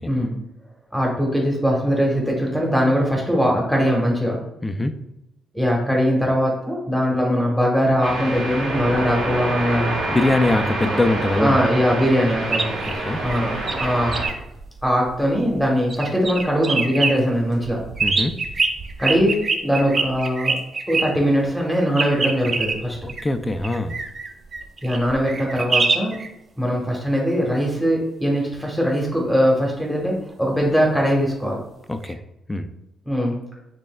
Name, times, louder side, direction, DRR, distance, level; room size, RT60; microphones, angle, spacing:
voice 1, 0.9-4.4 5.5-9.9 11.4-12.7 13.2-14.2 14.8-17.8 19.0-20.6 20.9-23.0 24.8-26.1 26.6-31.6 33.1-33.3, equal, ahead, -2 dB, 1.1 m, -21 dB
voice 2, 4.6-5.0 10.1-11.6 12.9-13.2 18.0-18.4 23.0-24.0 31.9-32.2 32.5-32.7, left 2 dB, 15° left, 9 dB, 0.3 m, -22 dB
sound 1, 8.0-14.3, right 1 dB, 80° right, 1.5 m, -27 dB
sound 2, 12.4-15.6 15.9-17.1 17.6-21.1 22.0-26.3 32.1-32.2, right 4 dB, 40° right, 0.5 m, -25 dB
5.3 x 3.4 x 2.2 m, 0.88 s
cardioid pair, 90°, 0 cm